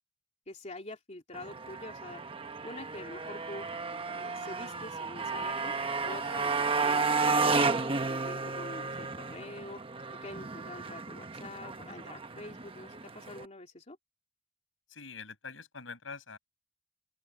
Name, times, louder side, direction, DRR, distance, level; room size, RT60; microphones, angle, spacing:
voice 1, 0.5-2.2 2.6-3.7 4.1-5.7 6.0-9.8 10.2-14.0, left 2 dB, 35° left, 2.9 m, -46 dB
Motorcycle, 1.3-13.5, right 4 dB, 30° right, 1.1 m, -33 dB
voice 2, 14.9-16.4, left 5 dB, 85° left, 6.7 m, -44 dB
open air
head